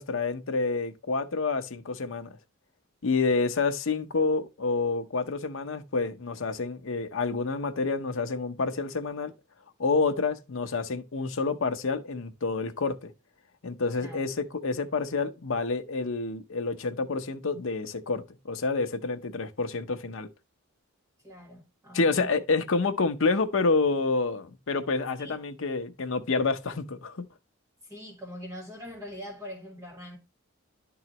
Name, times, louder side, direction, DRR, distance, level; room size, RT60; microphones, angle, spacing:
voice 1, 0.0-2.3 3.0-9.3 9.8-13.1 13.6-20.3 21.9-27.2, left 4 dB, 65° left, 0.7 m, -28 dB
voice 2, 14.0-14.3 21.2-22.3 25.2-25.4 27.8-30.2, equal, 15° right, 1.5 m, -42 dB
11.0 x 3.9 x 2.9 m
head